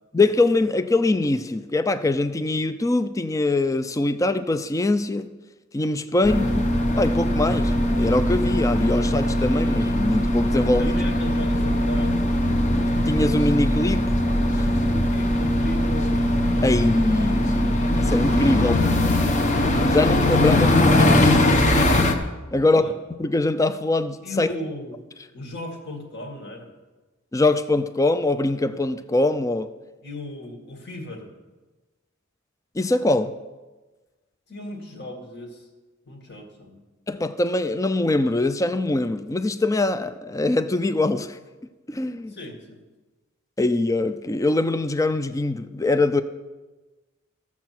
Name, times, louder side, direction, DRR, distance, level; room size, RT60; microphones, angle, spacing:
voice 1, 0.1-5.3 5.7-6.6 7.0-10.9 13.1-14.0 14.5-14.7 16.6-19.0 19.9-21.6 22.5-22.9 23.2-24.5 27.3-29.7 32.8-33.3 37.1-41.4 41.9-42.3 43.6-46.2, left 2 dB, 15° left, 0.4 m, -23 dB
sound 1, 6.2-22.2, left 1 dB, 35° left, 1.0 m, -21 dB
voice 2, 10.8-12.3 14.8-16.2 19.9-20.3 22.5-22.9 24.2-25.0 25.3-26.7 30.0-31.3 34.5-35.7 36.1-36.8 42.3-42.8, left 1 dB, 55° left, 2.1 m, -36 dB
14.5 x 7.2 x 6.0 m
head